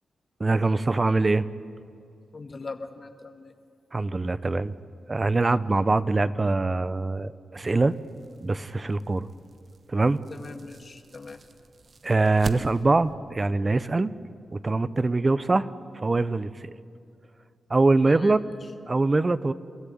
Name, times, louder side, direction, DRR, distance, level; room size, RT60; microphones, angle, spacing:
voice 1, 0.4-1.5 3.9-4.7 5.1-8.0 8.4-9.3 9.9-10.2 12.0-14.1 14.5-15.7 15.9-16.7 17.7-18.4 18.9-19.5, right 3 dB, 35° right, 16 dB, 0.9 m, -23 dB
voice 2, 2.3-3.5 10.3-11.4 18.1-18.4, left 3 dB, 50° left, 7 dB, 2.0 m, -40 dB
sound 1, 7.5-13.1, right 4 dB, 55° right, 1.3 m, -44 dB
29.0 x 14.0 x 9.4 m, 2.4 s
supercardioid pair, 45°, 0 cm